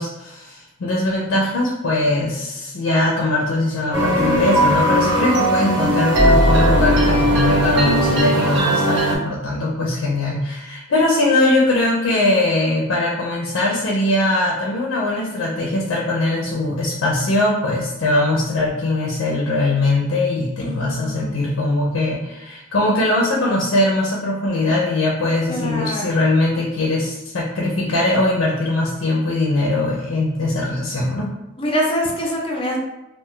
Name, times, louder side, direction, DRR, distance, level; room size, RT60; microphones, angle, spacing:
voice 1, 0.0-31.3, left 2 dB, 70° left, -3 dB, 0.5 m, -21 dB
sound 1, 3.9-9.1, right 1 dB, 65° right, 0.7 m, -17 dB
voice 2, 20.6-21.3 25.5-26.1 31.6-32.8, equal, 25° left, -1 dB, 0.6 m, -24 dB
2.4 x 2.3 x 3.6 m, 0.96 s
head